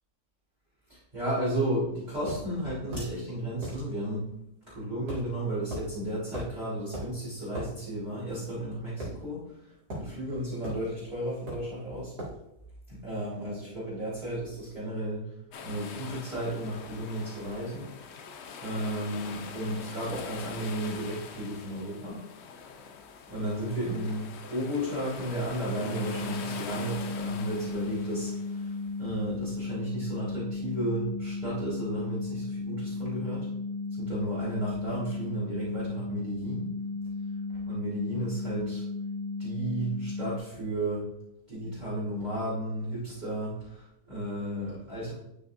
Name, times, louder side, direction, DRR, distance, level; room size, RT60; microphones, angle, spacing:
voice 1, 0.9-4.3 4.7-12.1 12.9-15.2 15.6-17.9 18.6-22.2 23.3-33.5 34.0-36.7 37.5-38.8 39.4-41.1 41.5-45.1, right 1 dB, 25° right, -11 dB, 3.1 m, -33 dB
sound 1, 2.3-2.4 2.9-3.1 3.6-3.8 5.1-5.3 5.7-5.9 6.3-6.6 6.9-7.1 7.5-7.7 9.0-9.5 9.9-10.1 10.6-10.9 11.5-11.7 12.2-12.4, right 1 dB, 65° right, 2.6 m, -37 dB
sound 2, 15.5-28.9, left 6 dB, 65° left, 0.6 m, -44 dB
sound 3, 25.8-40.4, left 3 dB, 35° left, 1.5 m, -35 dB
10.5 x 6.1 x 2.5 m, 0.83 s
omnidirectional pair, 1.8 m